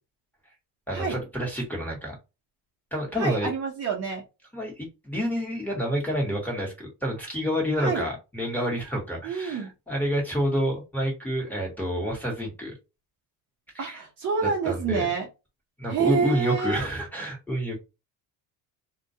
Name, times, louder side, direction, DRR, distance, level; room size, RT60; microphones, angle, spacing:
voice 1, 0.9-2.1 2.9-3.5 4.5-12.7 13.7-14.0 14.4-15.1 15.8-17.8, equal, 5° left, -3 dB, 1.1 m, -28 dB
voice 2, 3.2-4.2 7.8-8.0 9.2-9.7 13.8-15.3 15.9-16.8, right 5 dB, 35° right, -1 dB, 0.7 m, -27 dB
2.2 x 2.2 x 2.6 m, 0.27 s
cardioid pair, 130°, 44 cm